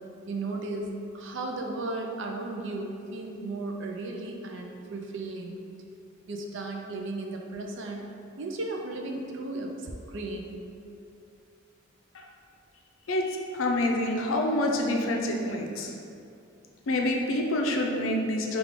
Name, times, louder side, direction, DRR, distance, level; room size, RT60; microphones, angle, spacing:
voice 1, 0.3-5.6 6.3-8.0 8.4-10.6, right 2 dB, 60° right, 1 dB, 0.5 m, -35 dB
voice 2, 13.1-15.9 16.9-18.6, left 1 dB, 70° left, 1 dB, 0.5 m, -27 dB
4.9 x 2.4 x 3.6 m, 2.5 s
head